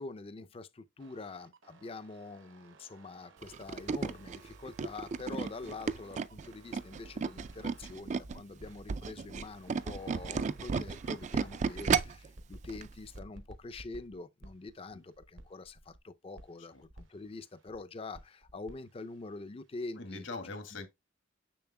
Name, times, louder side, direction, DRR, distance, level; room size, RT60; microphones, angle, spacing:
voice 1, 0.0-20.3 20.7-20.8, left 3 dB, 30° left, 0.4 m, -45 dB
sound 1, 1.0-8.8 9.3-12.0 12.3-16.0 16.3-17.8 18.1-20.2, right 2 dB, 75° right, 1.0 m, -57 dB
Tools, 3.4-8.4 8.8-12.3 12.7-12.9 13.2-13.3, right 5 dB, 35° right, 0.3 m, -33 dB
voice 2, 20.0-20.9, left 3 dB, 75° left, 1.6 m, -42 dB
7.0 x 6.4 x 2.2 m
head